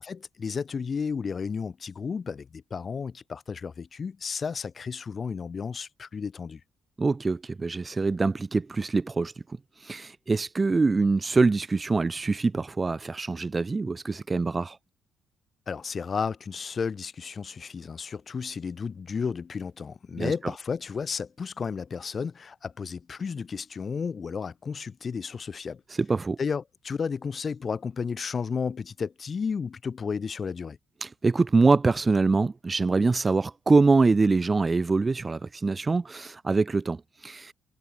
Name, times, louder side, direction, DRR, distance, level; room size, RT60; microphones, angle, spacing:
voice 1, 0.0-6.6 15.7-25.8 26.4-30.8, left 5 dB, 40° left, 2.2 m, -33 dB
voice 2, 7.0-9.3 9.8-14.8 20.2-20.3 26.0-26.4 31.0-37.5, right 3 dB, 25° right, 0.4 m, -24 dB
cardioid pair, 90°, 0 cm